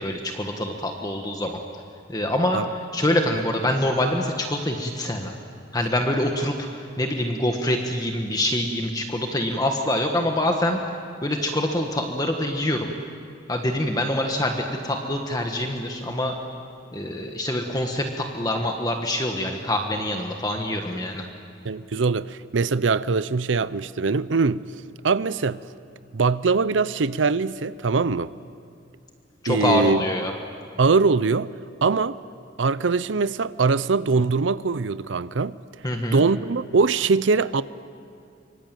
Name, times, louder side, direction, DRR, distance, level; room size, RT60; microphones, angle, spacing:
voice 1, 0.0-1.6 2.1-2.6 2.9-5.3 5.7-10.8 11.2-12.9 13.5-16.3 16.9-21.2 29.4-30.3 35.8-36.2, left 1 dB, 20° left, 1.5 m, -25 dB
voice 2, 21.6-24.6 25.0-25.6 26.1-28.3 29.5-30.0 30.8-31.5 31.8-32.2 32.6-35.6 36.1-37.6, right 4 dB, 85° right, 0.6 m, -22 dB
25.5 x 24.5 x 9.1 m
head